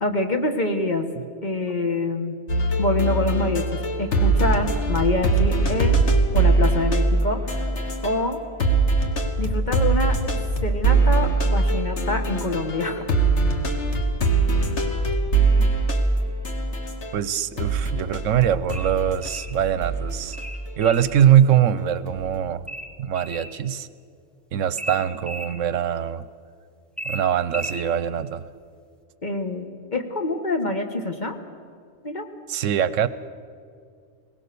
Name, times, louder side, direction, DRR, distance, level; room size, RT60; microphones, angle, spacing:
voice 1, 0.0-1.1 1.4-2.3 2.8-6.0 6.3-7.6 8.0-8.4 9.4-10.2 10.6-13.2 29.2-31.4 32.0-32.2, left 2 dB, 35° left, 5 dB, 1.5 m, -26 dB
sound 1, 2.5-8.3 8.6-17.2 17.6-20.7 22.1-22.4, right 3 dB, 65° left, 1.8 m, -22 dB
voice 2, 17.1-20.4 20.8-22.6 23.0-23.9 24.5-26.3 27.0-28.5 32.5-33.1, right 10 dB, 80° right, 15 dB, 1.0 m, -22 dB
sound 2, 18.7-19.5 20.3-21.1 22.7-23.5 24.8-25.5 27.0-27.9, right 1 dB, ahead, 1.5 m, -34 dB
22.0 x 18.5 x 6.8 m, 2.2 s
omnidirectional pair, 1.3 m